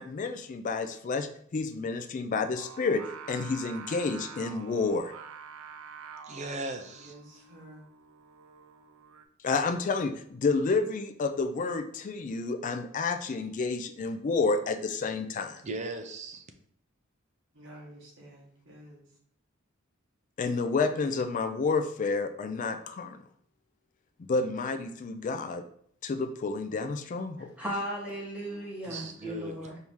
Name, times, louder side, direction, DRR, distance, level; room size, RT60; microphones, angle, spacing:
voice 1, 0.0-3.0 3.3-5.1 9.4-15.6 20.4-23.2 24.3-25.6 26.0-27.5, left 4 dB, 40° left, 0.3 m, -30 dB
Singing, 2.5-9.3, right 6 dB, 85° right, 0.4 m, -47 dB
voice 2, 6.3-7.1 15.6-16.4 28.9-29.6, right 2 dB, 35° right, 0.5 m, -37 dB
voice 3, 6.9-7.9 17.5-19.1, right 1 dB, 65° right, 1.3 m, -50 dB
voice 4, 27.6-29.8, equal, 5° right, 1.2 m, -36 dB
4.6 x 2.7 x 3.6 m
head